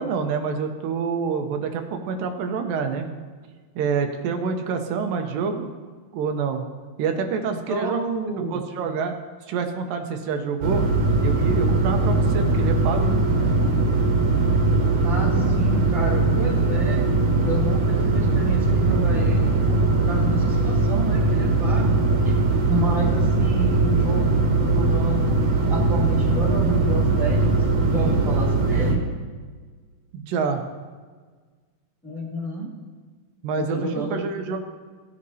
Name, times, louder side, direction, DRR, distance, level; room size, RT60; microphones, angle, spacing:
voice 1, 0.0-3.1 3.8-5.7 6.1-6.6 7.0-8.0 8.5-9.1 9.5-10.8 11.2-13.2 30.1-30.6 33.4-34.6, right 5 dB, 80° right, 5 dB, 2.4 m, -27 dB
voice 2, 7.7-8.6 15.0-17.1 17.4-22.0 22.7-25.4 25.7-27.6 27.8-29.0 32.0-32.7 33.6-34.3, right 1 dB, ahead, -4 dB, 1.7 m, -30 dB
sound 1, 10.6-28.9, right 3 dB, 60° right, 2.2 m, -20 dB
16.5 x 8.4 x 2.7 m, 1.5 s
omnidirectional pair, 4.0 m